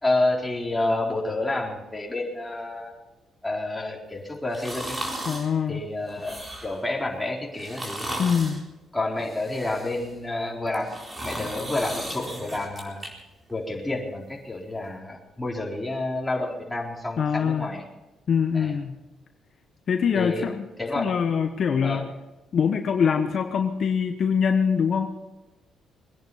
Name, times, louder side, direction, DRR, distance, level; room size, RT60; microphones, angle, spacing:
voice 1, 0.0-2.9 3.4-5.0 5.7-8.1 8.9-10.9 11.2-13.0 13.5-17.8 18.5-18.7 20.1-20.5 20.8-21.1 21.8-22.0, left 2 dB, 10° left, -2 dB, 4.1 m, -29 dB
sound 1, 4.5-5.5 6.1-6.8 7.5-8.6 9.2-10.1 10.7-13.1 13.5-13.6, right 1 dB, 25° right, 4.2 m, -36 dB
voice 2, 5.3-5.8 8.2-8.6 17.2-17.7 18.3-19.0 19.9-20.7 21.0-22.1 22.5-25.1, left 6 dB, 55° left, 5 dB, 1.1 m, -23 dB
22.0 x 10.5 x 5.7 m, 1.0 s
cardioid pair, 90°, 0 cm